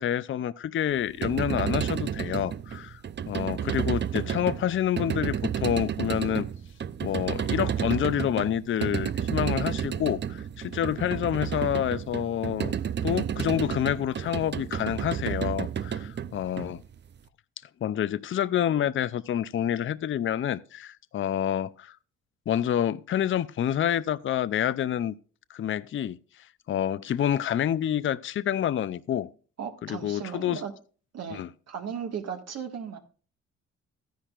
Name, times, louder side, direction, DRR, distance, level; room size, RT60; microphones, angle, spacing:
voice 1, 0.0-3.0 3.3-6.5 7.0-12.7 13.0-16.8 17.8-21.9 22.5-25.1 25.5-26.2 26.7-29.3 29.8-30.6 31.3-31.5, left 10 dB, 40° left, 0.5 m, -28 dB
sound 1, 1.0-17.2, right 8 dB, 35° right, 0.5 m, -31 dB
voice 2, 29.6-30.7 31.1-33.0, right 7 dB, 60° right, 1.8 m, -36 dB
13.5 x 10.0 x 2.5 m
cardioid pair, 90°, 30 cm